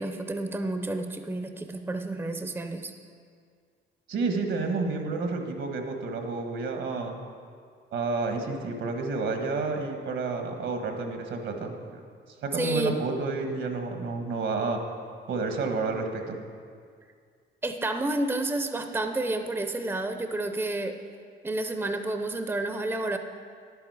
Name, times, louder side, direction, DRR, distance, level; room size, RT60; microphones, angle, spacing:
voice 1, 0.0-2.9 12.5-12.9 17.6-20.9 21.4-23.2, right 2 dB, 10° right, 6 dB, 0.6 m, -30 dB
voice 2, 4.1-7.1 7.9-12.0 12.4-14.8 15.3-16.4, right 3 dB, 75° right, 4 dB, 1.4 m, -30 dB
10.5 x 8.7 x 4.9 m, 2.1 s
cardioid pair, 90°, 20 cm